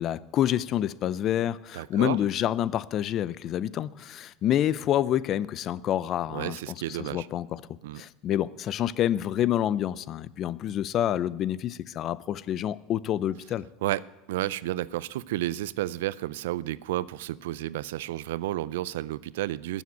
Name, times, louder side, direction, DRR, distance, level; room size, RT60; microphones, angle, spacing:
voice 1, 0.0-7.6 8.0-13.7, left 11 dB, 40° left, 0.5 m, -28 dB
voice 2, 1.7-2.2 6.3-7.3 7.8-8.0 13.8-14.0 14.3-19.8, right 15 dB, 90° right, 0.4 m, -31 dB
14.0 x 7.2 x 9.4 m
supercardioid pair, 135°, 0 cm